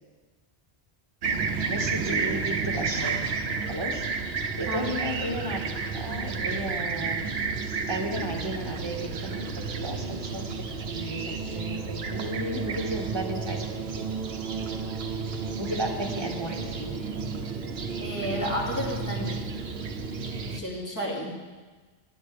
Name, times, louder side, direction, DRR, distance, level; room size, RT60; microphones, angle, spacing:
Fixed-wing aircraft airplane, 1.2-20.6, right 4 dB, 65° right, 1.0 m, -31 dB
voice 1, 1.7-3.2 3.7-4.0 4.5-5.6 5.9-7.2 7.9-9.4 9.8-10.4 10.8-14.1 15.6-17.1, right 1 dB, 25° right, 0 dB, 1.6 m, -34 dB
voice 2, 4.7-5.0 18.0-19.4 20.5-21.4, equal, 15° left, -5 dB, 2.6 m, -32 dB
20.0 x 10.5 x 3.4 m, 1.4 s
omnidirectional pair, 1.1 m